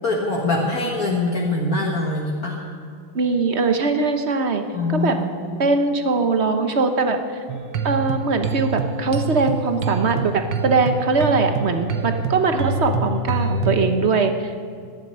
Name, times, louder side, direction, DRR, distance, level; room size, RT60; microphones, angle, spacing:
voice 1, 0.0-2.6 4.7-5.6, left 2 dB, 50° left, -1 dB, 1.8 m, -23 dB
voice 2, 3.1-4.6 4.9-5.2 5.6-7.4 7.8-14.6, right 4 dB, 45° right, 7 dB, 0.9 m, -21 dB
sound 1, 7.5-13.9, right 3 dB, 65° right, 1.6 m, -26 dB
14.5 x 11.0 x 8.7 m, 2.1 s
omnidirectional pair, 2.2 m